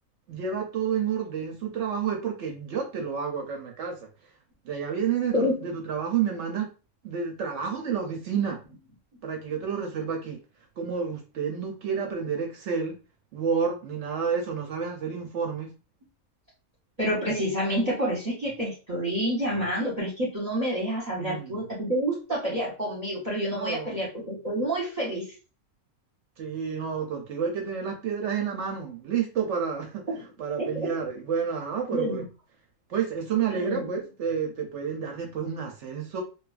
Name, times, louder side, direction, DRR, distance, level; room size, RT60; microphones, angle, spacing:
voice 1, 0.3-4.0 4.6-6.7 7.0-8.6 9.2-10.4 10.8-12.9 13.3-15.7 21.2-21.7 23.5-24.0 26.4-30.0 30.4-32.2 32.9-36.2, right 7 dB, 65° right, 1 dB, 0.8 m, -30 dB
voice 2, 5.3-5.7 17.0-25.3 30.1-30.2 30.6-30.9 31.9-32.3 33.5-34.0, equal, 35° right, -4 dB, 0.8 m, -28 dB
2.7 x 2.3 x 2.3 m, 0.33 s
omnidirectional pair, 1.5 m